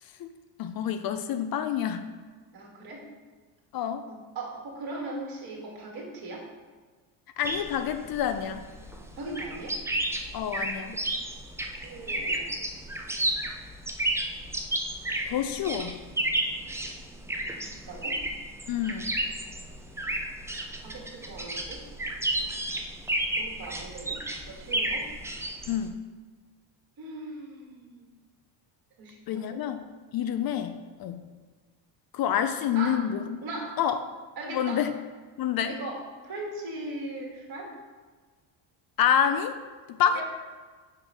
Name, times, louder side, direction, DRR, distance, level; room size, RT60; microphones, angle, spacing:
voice 1, 0.6-2.0 3.7-4.0 7.4-8.6 10.3-11.0 15.3-15.9 18.7-19.1 25.7-26.0 29.3-29.8 30.1-31.2 32.1-33.3 33.8-34.0 34.5-34.9 35.4-35.8 39.0-39.6 40.0-40.2, left 9 dB, 50° left, 9 dB, 0.5 m, -27 dB
voice 2, 2.5-3.0 4.1-6.5 9.1-9.8 11.8-12.5 17.6-18.2 20.8-21.8 23.4-24.2 24.5-25.1 27.0-28.1 29.0-29.6 32.7-33.1 33.4-33.8 34.4-34.8 35.7-37.7 40.1-40.2, right 2 dB, 50° right, -2 dB, 1.6 m, -39 dB
sound 1, 7.4-25.9, right 1 dB, 5° right, 0.3 m, -32 dB
5.6 x 3.8 x 4.6 m, 1.4 s
cardioid pair, 105°, 48 cm